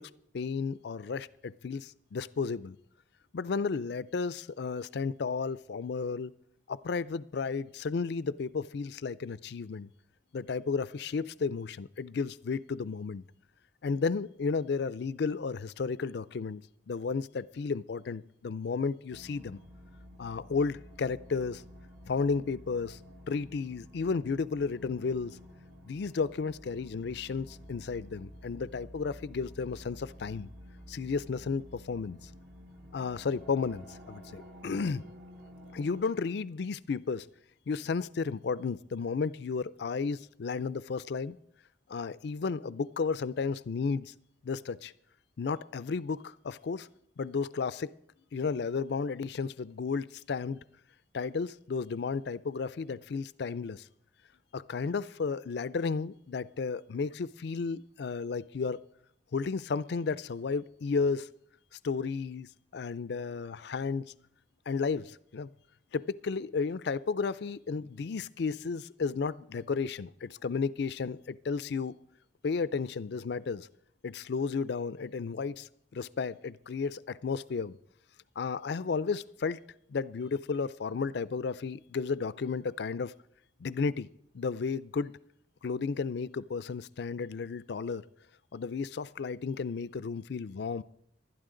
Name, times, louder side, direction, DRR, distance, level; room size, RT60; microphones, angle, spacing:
voice 1, 0.0-2.8 3.3-6.3 6.7-9.9 10.3-13.2 13.8-19.6 20.2-21.6 22.1-23.0 23.3-25.4 25.9-30.5 30.9-32.3 32.9-35.0 35.7-37.3 37.7-41.4 41.9-44.1 44.4-44.9 45.4-46.9 47.2-47.9 48.3-50.6 51.1-53.9 54.5-58.8 59.3-61.3 61.8-64.1 64.7-65.5 65.9-71.9 72.4-73.7 74.0-77.8 78.4-79.6 79.9-83.1 83.6-84.1 84.3-85.1 85.6-88.0 88.5-90.8, left 5 dB, 60° left, 0.4 m, -33 dB
sound 1, 19.1-36.0, equal, 60° right, 2.0 m, -51 dB
20.0 x 12.0 x 3.8 m
head